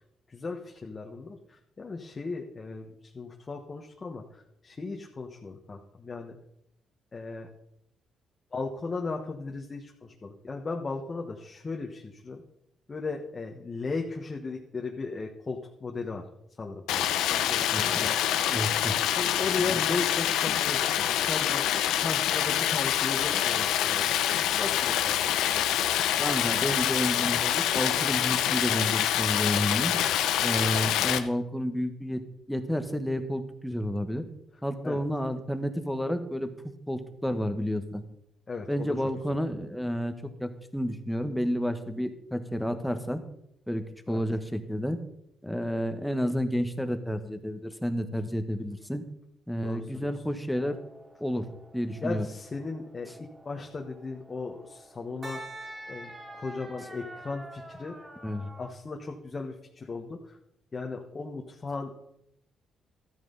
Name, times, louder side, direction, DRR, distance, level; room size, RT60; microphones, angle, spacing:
voice 1, 0.3-6.4 7.1-7.5 8.5-12.4 12.9-16.3 16.6-18.2 19.1-24.2 24.5-25.8 34.8-35.0 38.5-39.0 44.1-44.2 45.5-45.7 49.6-50.1 52.0-55.5 55.9-58.1 58.6-60.4 60.7-62.0, left 4 dB, 35° left, 1 dB, 1.4 m, -37 dB
Stream, 16.9-31.2, left 11 dB, 90° left, 0.7 m, -26 dB
voice 2, 17.6-18.1 18.5-18.9 19.7-19.8 26.2-29.9 30.4-32.2 32.5-34.2 34.6-36.5 36.9-38.0 38.7-40.1 40.4-43.2 43.7-45.0 45.4-49.0 49.5-50.8 51.2-51.5 51.7-52.2 58.2-58.5, equal, 5° left, 7 dB, 1.4 m, -30 dB
sound 1, 50.5-58.7, right 1 dB, 25° right, 3.4 m, -47 dB
13.5 x 9.2 x 4.1 m, 0.76 s
cardioid pair, 75°, 0 cm